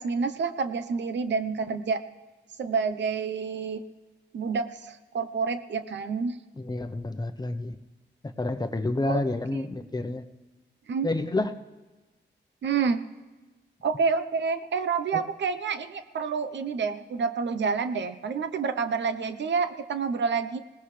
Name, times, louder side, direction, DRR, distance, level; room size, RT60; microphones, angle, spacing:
voice 1, 0.0-2.0 2.6-3.8 4.3-6.4 9.0-9.2 9.5-9.6 10.9-11.1 12.6-13.0 13.8-20.6, right 5 dB, 75° right, 10 dB, 0.9 m, -28 dB
voice 2, 6.6-7.8 8.4-10.2 11.0-11.5 15.1-15.2, left 2 dB, 20° left, 8 dB, 0.9 m, -29 dB
21.0 x 18.5 x 3.4 m, 1.2 s
cardioid pair, 90°, 19 cm